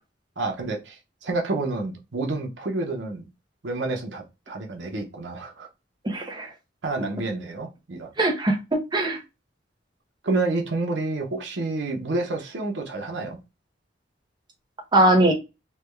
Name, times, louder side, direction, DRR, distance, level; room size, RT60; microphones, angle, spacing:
voice 1, 0.4-0.9 1.2-3.2 3.6-5.7 6.8-8.1 10.2-13.4, right 3 dB, 75° right, 0.8 m, -29 dB
voice 2, 6.0-6.5 8.2-9.2 14.9-15.3, right 1 dB, 25° right, 0.7 m, -21 dB
3.2 x 2.2 x 3.2 m
head